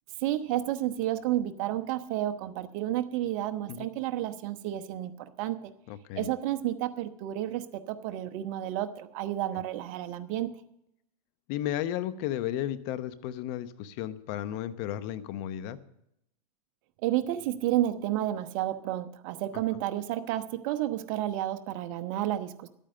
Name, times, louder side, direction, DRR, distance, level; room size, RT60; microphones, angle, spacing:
voice 1, 0.2-5.7 6.2-10.5 17.0-22.7, right 13 dB, 50° right, 9 dB, 1.0 m, -31 dB
voice 2, 5.9-6.3 9.5-9.6 11.5-15.8 19.5-19.6, left 12 dB, 45° left, 14 dB, 0.9 m, -34 dB
12.0 x 9.0 x 6.6 m, 0.77 s
hypercardioid pair, 130°, 21 cm